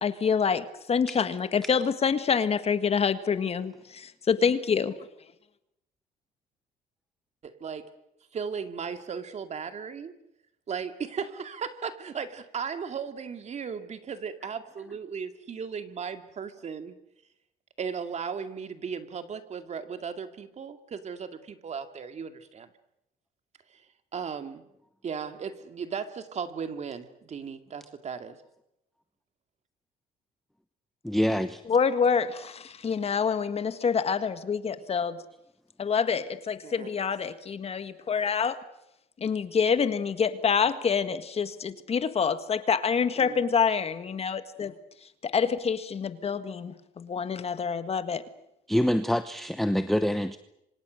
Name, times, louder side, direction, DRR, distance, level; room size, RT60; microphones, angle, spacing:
voice 1, 0.0-4.9 31.7-35.2 35.8-38.6 39.2-44.7 45.2-48.2, left 6 dB, 35° left, 1.7 m, -27 dB
voice 2, 7.4-7.9 8.3-10.1 10.7-17.0 17.8-22.7 23.7-23.8 24.1-24.6 25.0-28.4 36.6-37.1 43.2-43.4, right 6 dB, 40° right, 2.3 m, -36 dB
voice 3, 31.0-31.6 48.7-50.4, equal, ahead, 0.9 m, -25 dB
27.0 x 25.5 x 6.5 m
cardioid pair, 110°, 17 cm